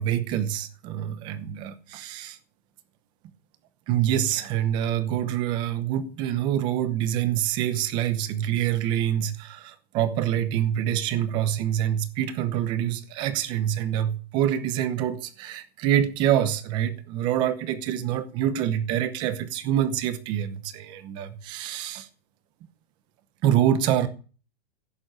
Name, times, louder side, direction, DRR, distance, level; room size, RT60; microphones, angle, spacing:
voice 1, 0.0-2.4 3.9-22.1 23.4-24.1, right 11 dB, 15° right, 0.9 m, -26 dB
16.0 x 7.0 x 9.3 m
hypercardioid pair, 180°, 30 cm